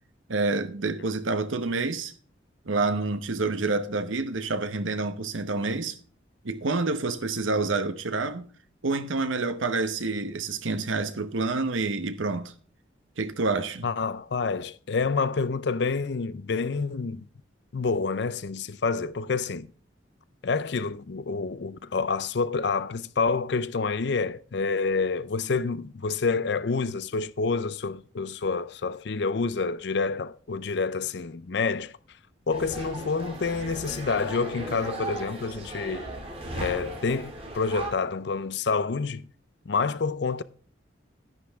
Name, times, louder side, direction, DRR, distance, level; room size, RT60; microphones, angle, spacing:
voice 1, 0.3-2.1 2.6-6.0 6.4-8.5 8.8-12.5 13.2-13.9, right 3 dB, 90° right, 0.9 m, -28 dB
voice 2, 13.8-17.3 17.7-19.7 20.4-31.9 32.5-36.1 36.6-39.3 39.7-40.4, left 4 dB, 60° left, 0.5 m, -28 dB
sound 1, 32.5-37.9, right 2 dB, 30° right, 2.4 m, -36 dB
11.0 x 10.0 x 3.5 m
head